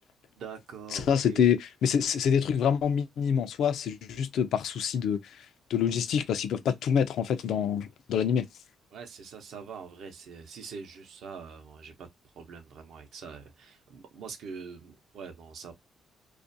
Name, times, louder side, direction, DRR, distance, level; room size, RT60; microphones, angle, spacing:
voice 1, 0.4-1.5 8.9-15.7, right 5 dB, 75° right, 0.6 m, -44 dB
voice 2, 0.9-8.5, left 8 dB, 75° left, 0.3 m, -26 dB
2.4 x 2.1 x 2.6 m
cardioid pair, 90°, 0 cm